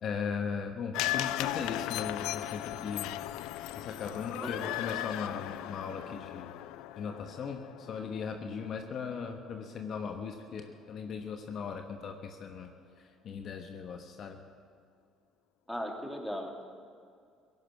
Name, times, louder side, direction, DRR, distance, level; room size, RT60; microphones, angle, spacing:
voice 1, 0.0-3.1 3.7-6.5 7.0-12.7 13.0-14.4, left 6 dB, 55° left, 5 dB, 1.2 m, -38 dB
sound 1, 0.9-9.2 9.6-9.7, left 14 dB, 70° left, 0.5 m, -37 dB
voice 2, 4.4-4.8 15.7-16.6, equal, 5° left, 1 dB, 3.1 m, -38 dB
17.0 x 11.0 x 7.8 m, 2.3 s
hypercardioid pair, 60°, 0 cm